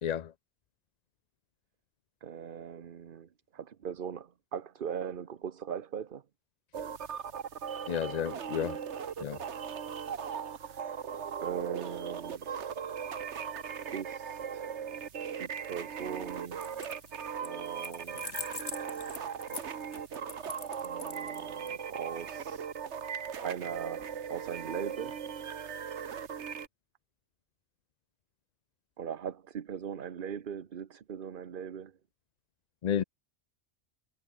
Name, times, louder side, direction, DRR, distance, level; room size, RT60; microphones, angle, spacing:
voice 1, 0.0-0.3 7.9-8.8 9.2-9.4 32.8-33.0, left 9 dB, 55° left, 0.5 m, -31 dB
voice 2, 2.2-6.2 10.3-11.1 11.4-13.0 13.9-14.7 15.4-16.8 17.4-18.3 20.8-22.7 23.4-25.2 29.0-31.9, right 8 dB, 50° right, 1.0 m, -40 dB
sound 1, 6.7-26.7, right 7 dB, 80° right, 1.5 m, -39 dB
sound 2, 16.5-17.1 17.4-21.7, left 3 dB, 90° left, 3.1 m, -43 dB
omnidirectional pair, 1.2 m